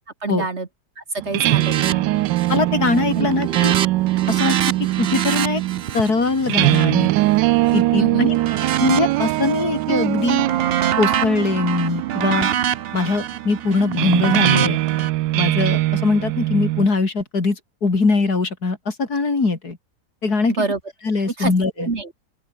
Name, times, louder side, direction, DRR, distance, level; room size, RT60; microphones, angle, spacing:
voice 1, 0.2-0.7 1.0-2.3 3.1-3.3 8.0-8.2 20.6-20.8 21.2-21.5 21.8-22.1, right 3 dB, 40° right, 2.0 m, -26 dB
sound 1, 1.2-16.9, right 17 dB, 85° right, 1.2 m, -22 dB
sound 2, 1.5-1.9 2.2-2.7 3.0-7.8 8.3-9.6 10.0-15.1, right 9 dB, 60° right, 0.6 m, -25 dB
voice 2, 2.5-3.8 4.3-4.6 5.0-5.6 5.9-7.1 7.7-8.4 8.8-10.5 11.0-12.5 12.9-14.8 15.4-19.8 20.2-20.7 21.0-21.9, left 4 dB, 60° left, 3.8 m, -21 dB
open air
omnidirectional pair, 1.9 m